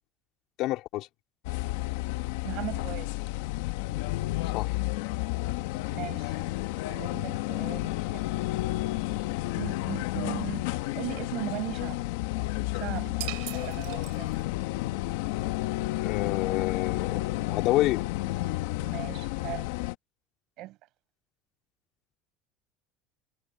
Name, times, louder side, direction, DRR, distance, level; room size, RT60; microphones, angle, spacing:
voice 1, 0.6-1.1 4.5-4.7 16.0-18.0, left 16 dB, 45° left, 3.5 m, -28 dB
sound 1, 1.4-19.9, left 17 dB, 80° left, 1.6 m, -31 dB
voice 2, 2.4-3.1 5.9-6.4 6.9-8.4 9.6-10.7 11.0-12.0 12.7-14.5 18.8-19.7 20.6-20.8, right 17 dB, 45° right, 7.5 m, -38 dB
sound 2, 13.2-14.7, right 33 dB, 70° right, 5.0 m, -40 dB
cardioid pair, 175°, 0 cm